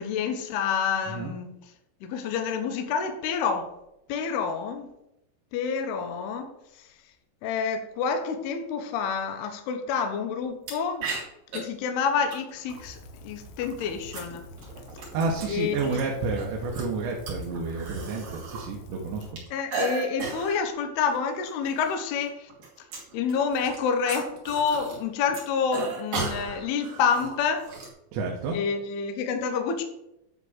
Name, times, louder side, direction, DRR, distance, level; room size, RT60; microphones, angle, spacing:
voice 1, 0.0-1.5 2.0-3.8 4.1-4.9 5.5-6.9 7.4-11.1 11.5-14.5 15.5-16.0 19.5-22.5 23.1-27.7 28.5-29.8, left 6 dB, 70° left, 5 dB, 2.7 m, -28 dB
sound 1, 10.7-10.8 11.0-11.6 12.3-12.8 13.6-16.0 16.4-18.7 18.9-20.6 21.0-21.2 21.5-22.0 22.2-25.0 25.3-27.9, right 4 dB, 50° right, 4.1 m, -35 dB
Rain, 12.7-19.3, equal, 90° left, 3.5 m, -46 dB
voice 2, 15.1-19.4 28.1-28.6, right 4 dB, 75° right, -1 dB, 3.5 m, -30 dB
11.0 x 4.1 x 6.5 m, 0.84 s
omnidirectional pair, 5.4 m